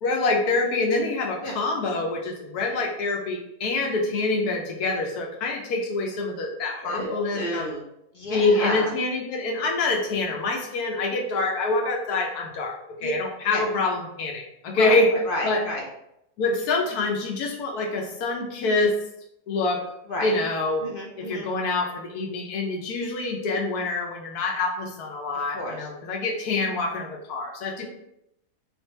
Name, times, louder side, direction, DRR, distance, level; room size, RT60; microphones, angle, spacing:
voice 1, 0.0-7.7 8.3-12.7 13.0-15.1 15.4-15.6 16.4-18.9 19.5-19.8 20.2-20.8 21.2-27.8, left 3 dB, 80° left, 1 dB, 1.2 m, -26 dB
voice 2, 6.8-7.9 8.1-8.9 13.0-13.1 13.5-13.6 14.7-15.8 20.0-20.3 20.8-21.5 25.3-25.9 27.8-27.9, left 1 dB, 60° left, -1 dB, 0.5 m, -31 dB
3.4 x 3.3 x 3.1 m, 0.81 s
omnidirectional pair, 1.6 m